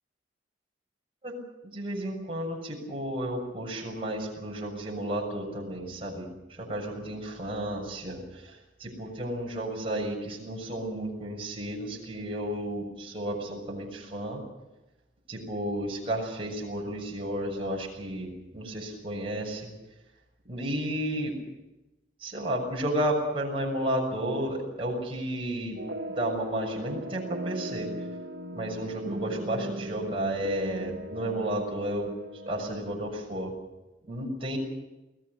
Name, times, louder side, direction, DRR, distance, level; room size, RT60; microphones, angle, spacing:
voice 1, 1.6-14.4 15.3-19.7 20.5-21.3 22.2-25.8 26.1-27.9 28.5-32.1 32.4-33.5 34.1-34.6, right 1 dB, 30° right, -1 dB, 6.7 m, -32 dB
sound 1, 25.8-33.0, right 1 dB, 60° right, 1.1 m, -38 dB
28.5 x 19.0 x 6.7 m, 1.0 s
head